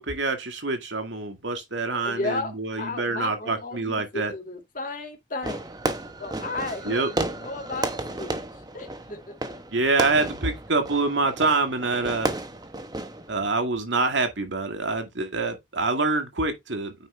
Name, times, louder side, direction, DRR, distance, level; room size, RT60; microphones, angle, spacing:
voice 1, 0.0-4.3 6.8-7.1 9.7-12.3 13.3-16.9, right 3 dB, 90° right, 2.0 m, -26 dB
voice 2, 2.0-5.7 6.2-8.4 8.7-9.2, left 2 dB, 50° left, 2.2 m, -34 dB
Fireworks, 5.4-13.5, right 2 dB, 20° right, 1.1 m, -33 dB
9.3 x 5.2 x 3.3 m
head